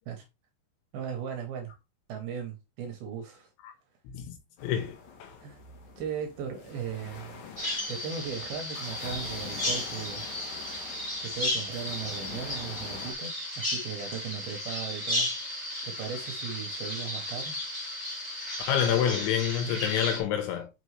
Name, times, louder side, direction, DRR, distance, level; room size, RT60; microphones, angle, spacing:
voice 1, 0.9-1.7 2.1-3.5 5.4-5.6 6.0-7.4 7.9-10.2 11.2-15.3 15.9-17.6, right 7 dB, 75° right, 2.3 m, -37 dB
voice 2, 4.1-4.4 4.6-5.3 18.7-20.7, left 9 dB, 85° left, 3.6 m, -28 dB
sound 1, 4.6-13.1, left 5 dB, 65° left, 2.1 m, -45 dB
Bird vocalization bird call bird song, 7.6-20.2, left 1 dB, 15° left, 1.2 m, -34 dB
6.0 x 5.8 x 3.2 m
omnidirectional pair, 5.3 m